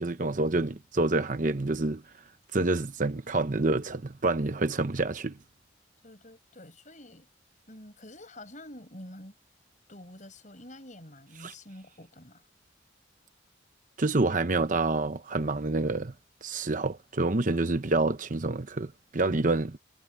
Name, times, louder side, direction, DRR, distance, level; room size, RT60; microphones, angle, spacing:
voice 1, 0.0-2.0 2.5-5.4 11.4-11.5 14.0-16.1 16.4-19.7, right 2 dB, 45° right, 0.9 m, -27 dB
voice 2, 6.0-7.3 7.7-9.3 9.9-12.5 14.2-14.4 19.3-19.5, left 1 dB, 40° left, 7.5 m, -48 dB
head